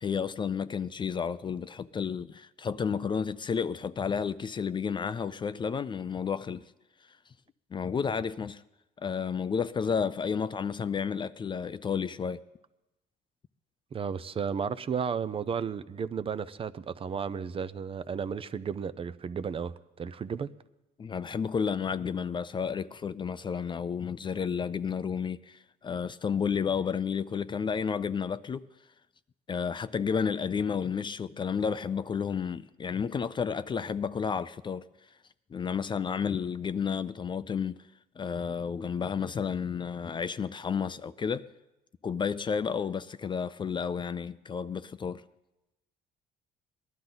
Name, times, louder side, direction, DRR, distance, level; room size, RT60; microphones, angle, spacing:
voice 1, 0.0-6.6 7.7-8.6 9.0-12.4 21.0-28.7 29.5-34.8 35.5-37.8 38.2-41.5 42.0-45.2, left 6 dB, 30° left, 0.4 m, -31 dB
voice 2, 13.9-20.5, right 6 dB, 35° right, 0.5 m, -33 dB
19.5 x 12.5 x 3.9 m
cardioid pair, 110°, 17 cm